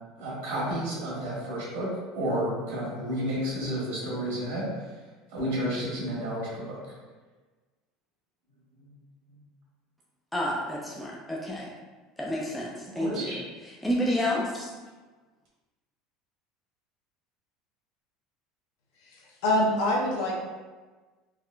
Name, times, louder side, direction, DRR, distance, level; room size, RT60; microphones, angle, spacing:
voice 1, 0.2-4.7 5.3-6.8 8.8-8.9 9.3-9.4 12.9-13.4, equal, 85° right, -6 dB, 1.2 m, -31 dB
voice 2, 10.3-11.7 12.2-13.3 13.8-14.7, left 1 dB, 5° left, -4 dB, 0.3 m, -29 dB
voice 3, 19.0-20.3, left 1 dB, 70° left, -2 dB, 0.7 m, -25 dB
3.5 x 2.4 x 2.2 m, 1.3 s
cardioid pair, 175°, 0 cm